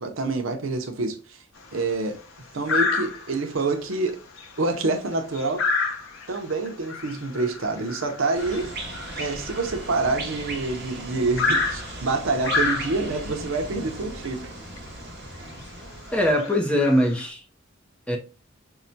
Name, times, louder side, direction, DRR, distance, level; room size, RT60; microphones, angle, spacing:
voice 1, 0.0-1.4 1.7-2.2 2.5-4.2 4.6-5.6 6.3-8.7 9.1-14.5, right 3 dB, 70° right, 0.7 m, -27 dB
sound 1, 1.6-1.9 2.7-3.5 3.9-4.1 4.4-10.6 11.4-13.3 14.2-14.4 14.8-14.9 15.4-15.6 16.1-17.2, left 4 dB, 80° left, 0.7 m, -29 dB
sound 2, 8.3-16.3, right 2 dB, 50° right, 1.2 m, -37 dB
voice 2, 16.1-17.4 18.1-18.2, equal, 5° left, 0.5 m, -21 dB
5.5 x 2.1 x 2.7 m
head